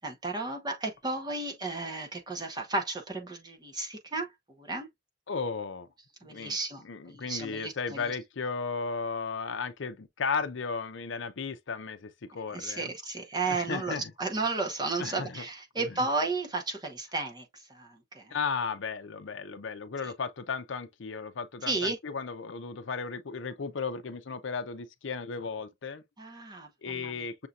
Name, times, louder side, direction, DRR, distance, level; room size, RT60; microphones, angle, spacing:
voice 1, 0.0-4.3 4.6-4.9 6.2-8.1 12.5-18.4 21.7-22.0 26.2-27.2, right 3 dB, 20° right, 1.0 m, -33 dB
voice 2, 5.3-5.9 6.2-6.6 6.8-12.9 13.5-14.1 15.0-15.4 15.8-15.9 18.3-26.0 26.8-27.5, left 5 dB, 65° left, 0.6 m, -35 dB
6.5 x 2.8 x 2.4 m
head